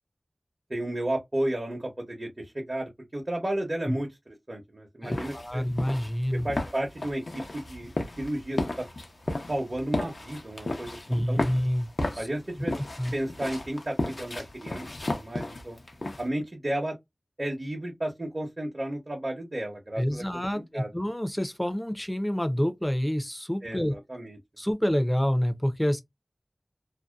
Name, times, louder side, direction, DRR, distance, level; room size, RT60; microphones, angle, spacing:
voice 1, 0.7-5.6 6.4-8.9 9.5-11.5 12.2-12.7 13.1-14.9 15.1-15.8 16.2-16.9 17.4-20.2 20.5-20.9 23.6-24.4, right 1 dB, 50° right, 0.9 m, -33 dB
voice 2, 5.0-6.5 11.1-12.3 12.7-13.1 20.0-23.9 24.6-26.0, equal, 15° left, 0.6 m, -28 dB
sound 1, 5.1-16.3, left 2 dB, 75° left, 0.6 m, -34 dB
2.7 x 2.2 x 2.2 m
wide cardioid pair, 40°, 0 cm